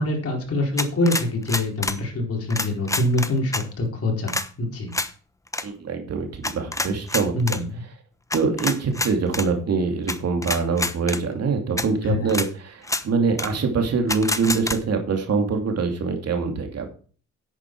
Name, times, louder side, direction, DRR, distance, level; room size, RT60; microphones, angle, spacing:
voice 1, 0.0-4.9 7.3-7.8 12.1-12.3, left 2 dB, 50° left, 1 dB, 4.4 m, -25 dB
sound 1, 0.8-2.0 2.5-3.6 4.3-4.5 4.9-5.1 5.5-5.6 6.4-7.6 8.3-9.5 10.1-10.2 10.4-11.2 11.8-11.9 12.3-12.5 12.8-13.0 13.4-13.5 14.1-14.8, left 2 dB, 10° left, 1.0 m, -27 dB
voice 2, 5.6-7.6 8.3-16.9, right 4 dB, 55° right, 4 dB, 2.7 m, -24 dB
10.0 x 8.9 x 4.7 m, 0.41 s
cardioid pair, 90°, 30 cm